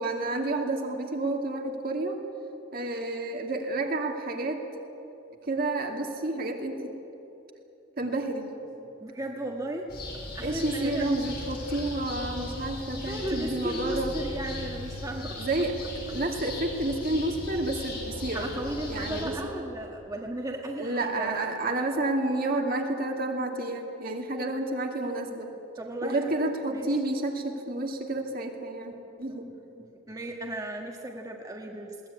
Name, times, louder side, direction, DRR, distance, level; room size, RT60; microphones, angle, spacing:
voice 1, 0.0-2.2 2.7-4.6 5.4-6.9 8.0-8.5 10.4-14.1 15.4-18.6 18.9-19.4 20.8-25.5 26.0-28.9 29.2-29.5, right 2 dB, 50° right, 2 dB, 2.4 m, -30 dB
voice 2, 8.8-9.9 10.3-11.0 13.1-15.5 18.3-21.5 25.8-26.3 26.7-26.9 30.1-32.1, right 1 dB, 20° right, 0 dB, 1.5 m, -35 dB
sound 1, 9.9-19.3, left 2 dB, 55° left, 5.7 m, -38 dB
21.0 x 18.0 x 9.6 m, 2.9 s
head